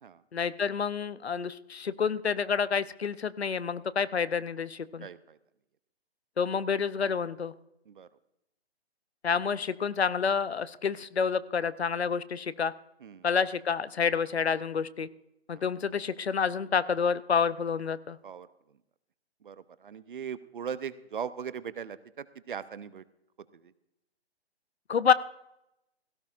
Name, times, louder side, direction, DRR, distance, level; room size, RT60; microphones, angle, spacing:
voice 1, 0.3-5.1 6.4-7.5 9.2-12.7 13.2-15.1 15.5-18.2 24.9-25.1, left 6 dB, 75° left, 17 dB, 0.7 m, -28 dB
voice 2, 5.0-5.4 7.9-8.1 13.0-13.3 15.5-15.6 18.2-18.5 19.4-23.0 23.6-23.7, right 7 dB, 55° right, 16 dB, 0.7 m, -39 dB
17.0 x 16.5 x 2.5 m, 0.85 s
figure-of-eight pair, 135°, 32 cm